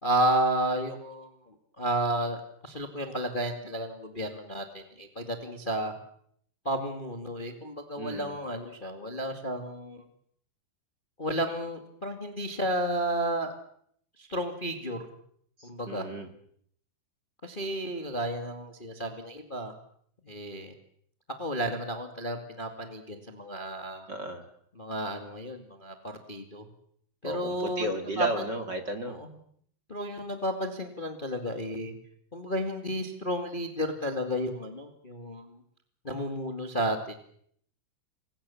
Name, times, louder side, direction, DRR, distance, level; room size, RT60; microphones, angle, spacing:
voice 1, 0.0-1.3 1.8-5.9 6.6-10.0 11.2-13.5 14.2-15.0 15.6-16.0 17.4-19.7 20.3-20.7 21.4-24.1 24.8-26.6 27.2-27.9 28.1-28.4 29.1-29.3 29.9-31.9 32.3-35.6 36.0-37.2, right 1 dB, 65° left, 5 dB, 0.5 m, -32 dB
voice 2, 8.0-8.4 15.6-16.3 24.1-24.4 27.2-29.2, right 1 dB, 35° right, 6 dB, 1.9 m, -34 dB
29.0 x 23.5 x 7.2 m, 0.68 s
omnidirectional pair, 5.4 m